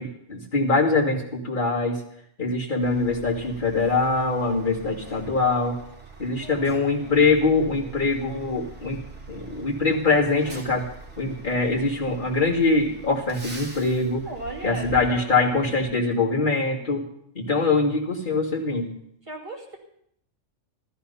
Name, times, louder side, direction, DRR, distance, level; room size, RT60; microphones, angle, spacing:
voice 1, 0.0-2.0 2.4-5.8 6.2-9.0 9.3-10.9 11.2-14.2 14.6-17.1 17.3-18.9, left 3 dB, 40° left, -3 dB, 2.7 m, -23 dB
Truck, 2.8-15.9, right 4 dB, 60° right, 2.4 m, -44 dB
voice 2, 6.4-7.2 14.2-15.4 19.3-19.8, right 2 dB, 25° right, -2 dB, 2.7 m, -37 dB
14.0 x 13.5 x 5.6 m, 0.71 s
omnidirectional pair, 1.3 m